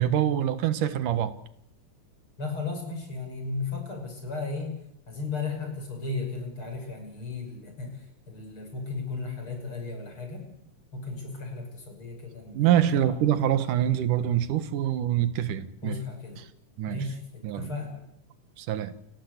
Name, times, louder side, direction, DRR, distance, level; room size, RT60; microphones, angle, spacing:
voice 1, 0.0-1.3 12.5-16.0 16.8-17.0 17.4-17.7 18.6-18.9, right 11 dB, 85° right, 2.9 m, -25 dB
voice 2, 2.4-4.7 5.1-10.5 10.9-13.6 15.8-16.4 16.9-18.0, left 3 dB, 40° left, 6.6 m, -35 dB
29.5 x 16.5 x 8.1 m
omnidirectional pair, 3.6 m